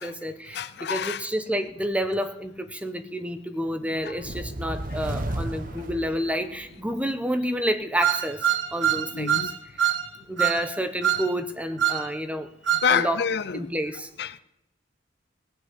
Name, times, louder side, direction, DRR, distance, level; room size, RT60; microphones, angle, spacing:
voice 1, 0.0-9.5 10.3-12.5 12.9-13.3 13.5-14.1, equal, 5° right, 1.0 m, -29 dB
voice 2, 0.5-1.3 4.0-4.2 4.9-5.3 5.7-5.8 8.9-9.5 12.8-13.7 14.2-14.4, left 6 dB, 55° left, 0.6 m, -28 dB
sound 1, 4.1-6.8, right 1 dB, 45° right, 1.2 m, -33 dB
sound 2, 8.0-9.5 9.8-10.0 10.4-10.6 11.0-11.3 11.8-12.0 12.7-12.9, right 10 dB, 65° right, 1.7 m, -23 dB
18.0 x 8.1 x 8.5 m
head